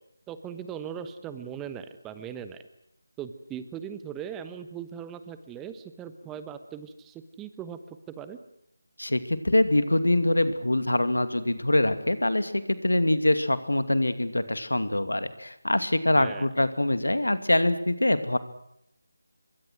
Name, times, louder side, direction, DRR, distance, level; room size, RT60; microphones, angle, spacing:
voice 1, 0.3-2.6 3.2-7.8 8.1-8.4 16.1-16.5, right 8 dB, 10° right, 11 dB, 1.2 m, -39 dB
voice 2, 9.0-18.4, left 1 dB, 85° left, 11 dB, 2.6 m, -24 dB
26.5 x 23.5 x 6.3 m, 0.77 s
figure-of-eight pair, 160°, 0 cm